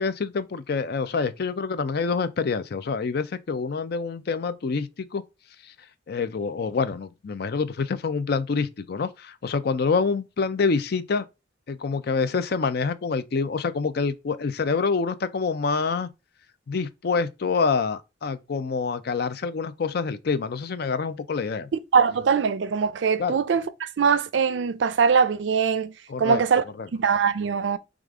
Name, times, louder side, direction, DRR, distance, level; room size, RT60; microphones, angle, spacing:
voice 1, 0.0-5.2 5.6-5.7 6.1-11.3 11.7-16.1 16.7-21.7 23.2-23.4 26.1-26.4 26.8-26.9, left 4 dB, 60° left, 0.5 m, -26 dB
voice 2, 21.9-25.9 26.2-26.6 26.9-27.8, right 6 dB, 75° right, 0.4 m, -22 dB
4.9 x 2.5 x 3.6 m
head